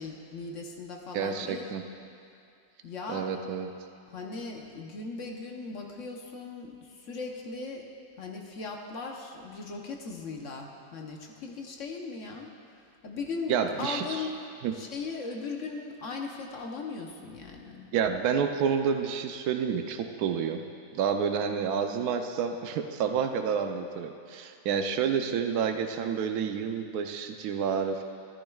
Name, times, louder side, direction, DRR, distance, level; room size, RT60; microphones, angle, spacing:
voice 1, 0.0-1.7 2.8-3.3 4.1-7.9 8.2-12.5 13.0-14.4 14.7-17.9, left 4 dB, 55° left, 1 dB, 1.2 m, -38 dB
voice 2, 1.1-1.9 3.1-3.7 13.5-14.3 14.6-14.7 17.9-20.6 20.9-28.0, right 7 dB, 75° right, 5 dB, 1.2 m, -29 dB
13.5 x 13.5 x 2.4 m, 2.5 s
omnidirectional pair, 1.6 m